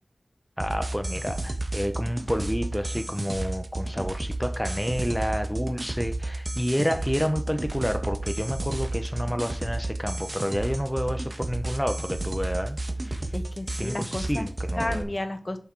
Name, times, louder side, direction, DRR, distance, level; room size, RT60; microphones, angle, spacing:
voice 1, 0.6-12.8 13.0-13.2 13.8-15.0, equal, ahead, 0.9 m, -29 dB
sound 1, 0.6-15.0, right 2 dB, 35° right, 1.4 m, -32 dB
voice 2, 13.3-14.5 14.7-15.6, left 1 dB, 35° left, 1.5 m, -32 dB
7.0 x 6.0 x 4.7 m
wide cardioid pair, 55°, 0 cm